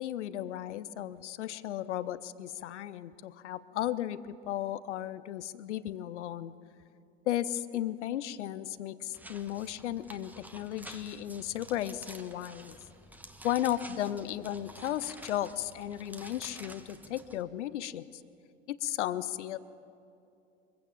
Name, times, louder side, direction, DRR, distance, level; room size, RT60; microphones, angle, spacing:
voice 1, 0.0-6.5 7.3-12.8 13.4-18.2 18.7-19.6, left 12 dB, 70° left, 17 dB, 0.8 m, -35 dB
sound 1, 9.1-17.4, right 1 dB, 5° right, 1.4 m, -50 dB
23.5 x 16.0 x 7.3 m, 2.6 s
figure-of-eight pair, 70°, 36 cm